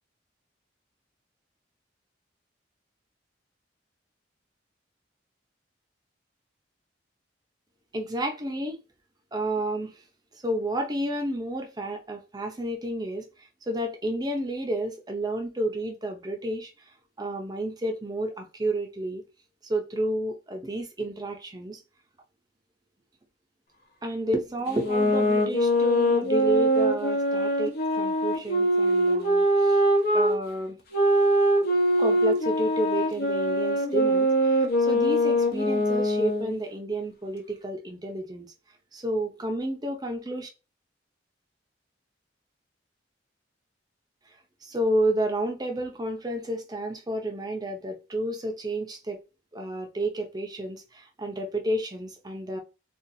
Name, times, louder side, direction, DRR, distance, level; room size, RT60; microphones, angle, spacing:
voice 1, 7.9-8.8 9.3-9.9 10.4-13.3 13.7-16.7 17.2-19.2 19.6-21.8 24.0-29.8 30.1-30.8 32.0-38.5 38.9-40.5 44.6-49.2 49.5-52.6, right 1 dB, 20° right, 0.6 m, -30 dB
sound 1, 24.7-30.3 30.9-36.5, equal, 55° left, 0.9 m, -23 dB
4.0 x 2.4 x 2.6 m
head